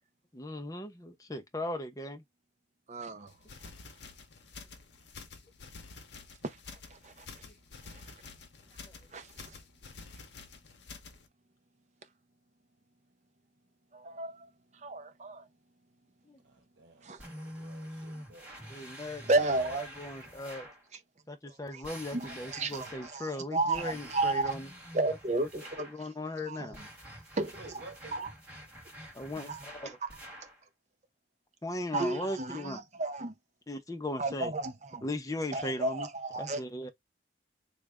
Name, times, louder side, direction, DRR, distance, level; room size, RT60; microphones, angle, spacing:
voice 1, 0.3-2.2 7.4-7.5 8.9-9.0 16.3-16.4 18.1-18.2 18.7-20.7 21.3-24.7 25.1-25.5 25.8-26.8 29.1-30.0 31.6-32.8 33.7-34.5 35.0-36.1 36.4-36.9, left 1 dB, 20° left, 0.6 m, -38 dB
voice 2, 2.9-3.3 6.4-6.6 6.9-7.2 7.9-8.0 9.1-9.5 13.9-14.5 14.8-15.5 17.0-17.2 19.3-19.9 21.7-21.8 22.1-24.5 24.9-25.9 26.5-26.7 27.4-27.8 28.1-28.3 29.4-29.6 31.9-33.3 34.2-35.0 35.5-36.6, right 2 dB, 40° right, 0.6 m, -33 dB
sound 1, 3.3-11.3, left 4 dB, 70° left, 0.7 m, -50 dB
voice 3, 16.4-18.8 27.6-28.2, right 2 dB, 75° right, 1.0 m, -52 dB
sound 2, 17.2-20.8 21.8-23.2 23.7-26.0 26.7-30.6, equal, 5° right, 1.7 m, -47 dB
3.2 x 2.3 x 3.5 m
head